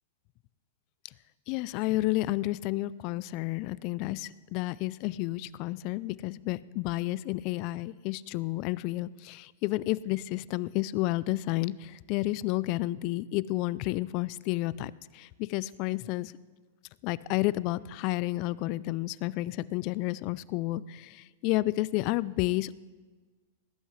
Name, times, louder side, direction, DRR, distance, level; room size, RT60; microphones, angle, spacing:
voice 1, 1.5-16.3 17.0-21.2 21.4-22.7, left 18 dB, 45° left, 19 dB, 0.3 m, -31 dB
20.0 x 11.5 x 3.2 m, 1.4 s
hypercardioid pair, 130°, 0 cm